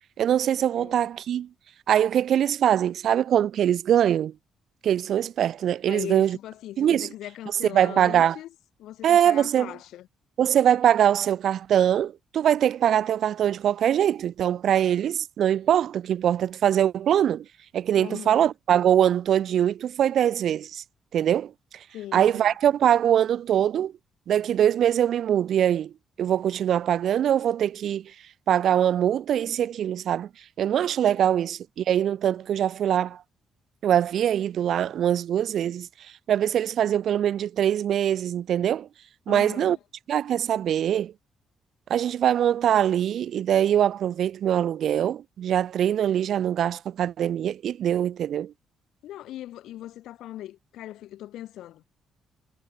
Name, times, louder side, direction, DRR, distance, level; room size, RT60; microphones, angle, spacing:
voice 1, 0.2-1.5 1.9-4.3 4.8-6.4 6.8-7.1 7.5-8.4 9.0-9.7 10.4-17.4 17.7-20.8 21.1-21.5 22.1-23.9 24.3-25.9 26.2-28.1 28.5-30.3 30.6-33.2 33.8-38.9 39.3-39.8 40.1-41.1 41.9-48.5, right 10 dB, 65° right, 0.4 m, -23 dB
voice 2, 5.9-8.5 8.8-10.1 18.0-18.4 21.9-22.4 39.3-39.8 49.0-51.8, left 13 dB, 80° left, 0.4 m, -39 dB
cardioid pair, 90°, 0 cm